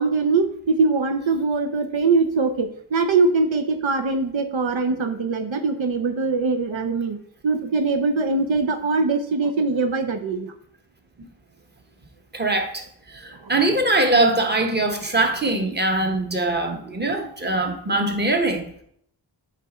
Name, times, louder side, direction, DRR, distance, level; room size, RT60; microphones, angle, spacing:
voice 1, 0.0-7.2 7.4-10.5 13.3-13.5, right 4 dB, 80° right, 7 dB, 0.8 m, -22 dB
voice 2, 12.3-12.8 13.1-18.8, right 2 dB, 20° right, 3 dB, 1.2 m, -22 dB
8.3 x 4.0 x 4.3 m, 0.65 s
wide cardioid pair, 70°, 46 cm